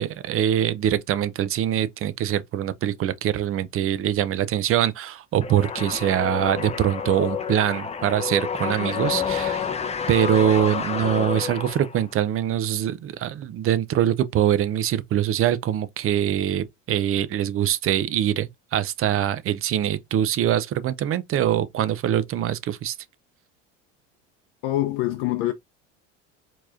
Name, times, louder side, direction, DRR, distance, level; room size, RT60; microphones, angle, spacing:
voice 1, 0.0-9.6 10.1-22.9, right 10 dB, 35° right, 0.6 m, -23 dB
sound 1, 5.4-12.2, left 7 dB, 15° left, 0.6 m, -29 dB
voice 2, 24.6-25.5, left 15 dB, 65° left, 0.6 m, -24 dB
4.5 x 2.9 x 2.5 m
hypercardioid pair, 85°, 38 cm